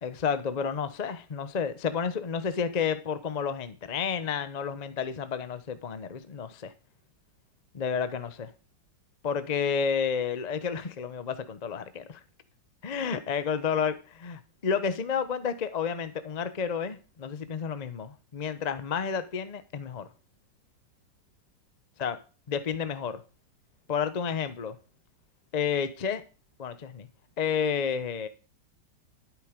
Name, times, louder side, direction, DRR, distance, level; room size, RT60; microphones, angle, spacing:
voice 1, 0.0-6.7 7.7-8.5 9.2-12.2 12.8-20.1 22.0-22.2 22.5-23.2 23.9-24.8 25.5-26.2 26.6-27.1 27.4-28.3, left 6 dB, 50° left, 0.4 m, -31 dB
11.5 x 9.1 x 5.1 m
omnidirectional pair, 2.0 m